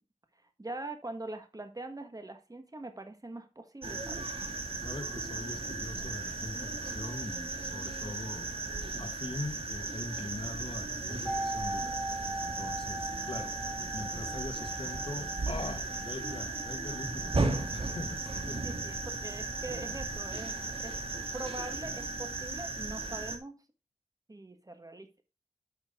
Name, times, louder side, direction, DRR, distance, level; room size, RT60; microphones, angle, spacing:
voice 1, 0.6-4.3 18.6-21.0 21.3-23.6 24.3-25.2, right 2 dB, 30° right, 1.6 m, -43 dB
sound 1, 3.8-23.4, right 3 dB, 50° right, 1.7 m, -36 dB
voice 2, 4.8-8.5 9.0-11.9 12.4-13.6 13.9-18.9, left 2 dB, 45° left, 1.7 m, -42 dB
sound 2, 11.2-21.0 21.3-21.4, right 2 dB, 5° left, 0.9 m, -41 dB
9.3 x 5.7 x 3.7 m
wide cardioid pair, 60°, 12 cm